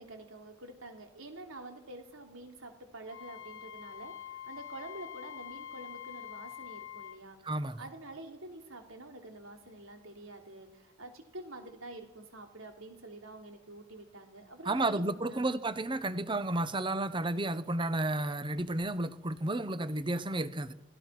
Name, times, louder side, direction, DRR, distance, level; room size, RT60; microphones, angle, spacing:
voice 1, 0.0-7.4 7.8-15.5, right 2 dB, 80° right, 3.2 m, -47 dB
Wind instrument woodwind instrument, 3.1-7.2, left 10 dB, 70° left, 1.4 m, -45 dB
voice 2, 7.4-7.8 14.7-20.7, right 2 dB, 25° right, 0.8 m, -32 dB
27.5 x 17.0 x 5.9 m
head